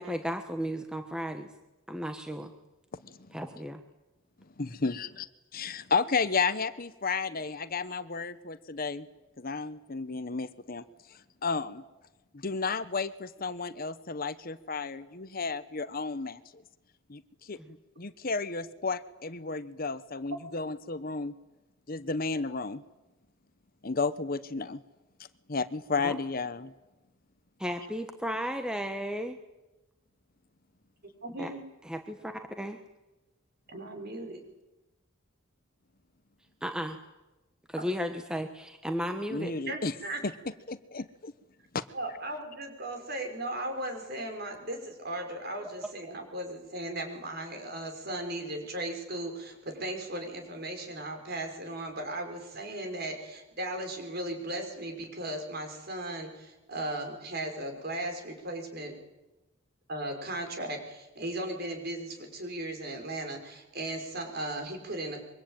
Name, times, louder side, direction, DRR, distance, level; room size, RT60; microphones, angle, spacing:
voice 1, 0.0-1.5 1.9-2.5 3.3-3.8 26.0-26.2 27.6-29.4 31.4-31.5 31.8-32.8 36.6-37.0 37.7-39.5, equal, 5° right, 6 dB, 1.3 m, -34 dB
voice 2, 4.6-5.3 5.5-9.1 9.4-11.8 12.3-16.6 17.1-21.3 21.9-22.8 23.8-24.8 25.5-26.7 39.3-39.9 40.2-40.3 40.7-41.3 41.7-41.8, left 4 dB, 45° left, 13 dB, 1.0 m, -33 dB
voice 3, 31.2-31.6 33.7-34.4 37.8-37.9 39.7-40.2 41.9-58.9 59.9-65.2, right 1 dB, 50° right, 5 dB, 5.5 m, -37 dB
24.5 x 24.0 x 9.0 m, 1.0 s
head